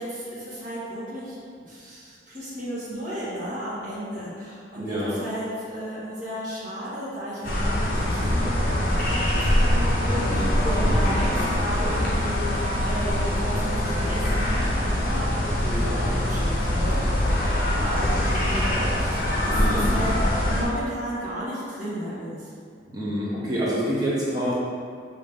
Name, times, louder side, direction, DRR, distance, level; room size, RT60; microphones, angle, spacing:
voice 1, 0.0-1.3 1.7-20.1 20.4-22.5, equal, 40° right, -11 dB, 1.3 m, -34 dB
voice 2, 4.8-5.1 10.1-10.5 10.8-11.0 15.7-16.0 19.5-19.8 22.9-24.5, equal, 20° right, -8 dB, 0.7 m, -27 dB
sound 1, 7.4-20.6, left 1 dB, 45° left, 0.8 m, -23 dB
5.4 x 2.7 x 3.4 m, 2.2 s
head